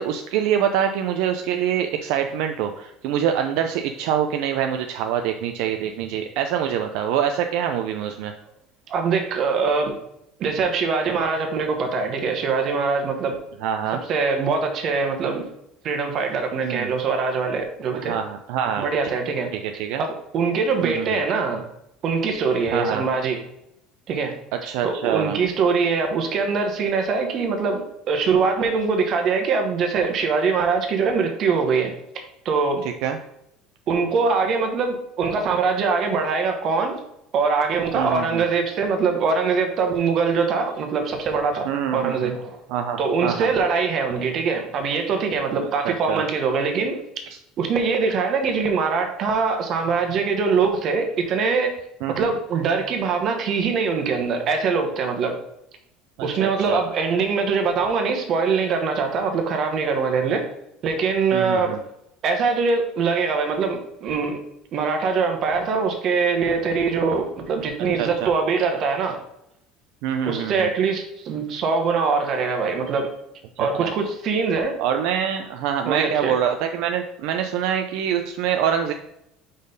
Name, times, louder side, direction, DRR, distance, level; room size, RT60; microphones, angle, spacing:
voice 1, 0.0-8.3 13.6-14.0 16.6-16.9 17.9-18.9 19.5-20.0 20.8-21.1 22.7-23.0 24.5-25.4 32.8-33.2 37.9-38.4 41.7-42.3 42.7-43.5 45.8-46.2 52.0-52.3 56.2-56.8 61.3-61.8 67.9-68.3 70.0-70.7 73.6-73.9 74.8-78.9, right 9 dB, 70° right, 5 dB, 0.4 m, -25 dB
voice 2, 8.9-9.9 10.4-13.4 14.1-15.5 15.8-18.1 18.8-19.5 20.0-21.6 22.0-23.4 24.1-24.3 24.8-32.8 33.9-37.0 37.3-42.6 43.0-47.0 47.6-51.8 52.1-55.3 56.2-60.4 60.8-61.8 62.2-64.4 64.7-69.2 70.2-73.1 73.6-74.8 75.9-76.3, right 5 dB, 40° right, 4 dB, 1.1 m, -23 dB
5.0 x 4.4 x 5.2 m, 0.80 s
cardioid pair, 155°, 0 cm